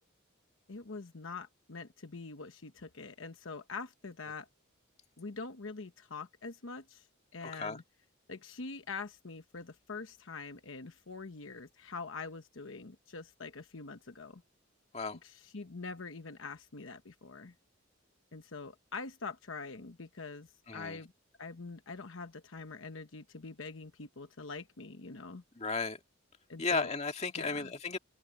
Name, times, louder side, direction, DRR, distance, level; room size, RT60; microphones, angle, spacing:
voice 1, 0.7-4.5 5.2-7.1 7.3-7.8 8.3-14.4 15.2-17.5 18.3-21.1 21.4-25.4 26.5-26.9 27.3-27.7, left 4 dB, 70° left, 1.0 m, -44 dB
voice 2, 7.4-7.8 14.9-15.2 20.7-21.0 25.6-26.0 26.6-28.0, left 4 dB, 30° left, 2.3 m, -34 dB
head